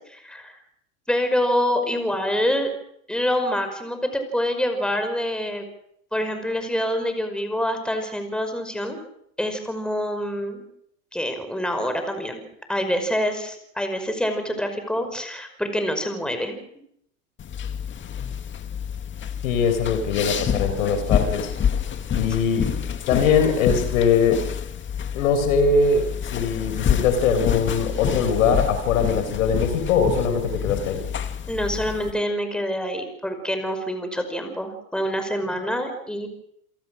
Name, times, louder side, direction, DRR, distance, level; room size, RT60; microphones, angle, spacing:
voice 1, 0.1-0.6 1.1-2.7 3.1-5.6 6.1-9.0 9.4-10.7 11.1-12.4 12.7-16.6 31.5-36.3, equal, ahead, 7 dB, 5.3 m, -26 dB
sound 1, 17.4-32.1, left 8 dB, 30° left, 2.2 m, -28 dB
voice 2, 19.4-21.5 22.1-22.7 23.1-24.5 25.1-31.0, left 5 dB, 75° left, 9 dB, 4.7 m, -21 dB
29.0 x 18.0 x 6.4 m, 0.72 s
hypercardioid pair, 100°, 41 cm